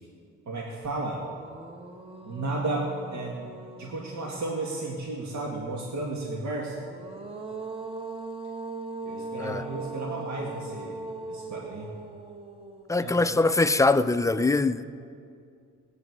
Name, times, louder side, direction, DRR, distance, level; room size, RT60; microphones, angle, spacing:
voice 1, 0.5-1.2 2.2-3.5 3.8-6.8 9.0-11.0 11.3-11.9 13.0-13.3, right 2 dB, 65° right, -2 dB, 1.9 m, -33 dB
sound 1, 0.8-0.9 1.3-5.0 6.7-13.9, right 3 dB, 20° right, 1.1 m, -40 dB
voice 2, 12.9-14.8, left 3 dB, 10° left, 11 dB, 0.5 m, -23 dB
19.5 x 9.0 x 4.7 m, 2.3 s
cardioid pair, 90°, 30 cm